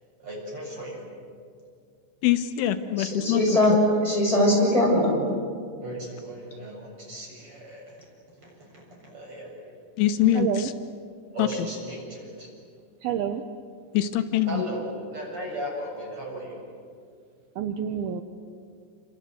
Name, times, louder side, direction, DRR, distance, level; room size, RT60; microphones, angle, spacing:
voice 1, 0.2-0.9 5.8-8.0 8.4-9.5 11.3-12.5 14.5-16.6, equal, 25° right, -2 dB, 7.7 m, -36 dB
voice 2, 2.2-3.4 3.7-3.8 10.0-10.5 11.4-11.5 14.0-14.6, left 12 dB, 85° left, 8 dB, 3.5 m, -23 dB
voice 3, 3.0-5.2, left 1 dB, 5° left, -3 dB, 7.3 m, -21 dB
voice 4, 10.3-10.7 13.0-13.4 17.6-18.2, right 9 dB, 80° right, 6 dB, 2.2 m, -28 dB
27.5 x 26.5 x 7.9 m, 2.2 s
omnidirectional pair, 5.6 m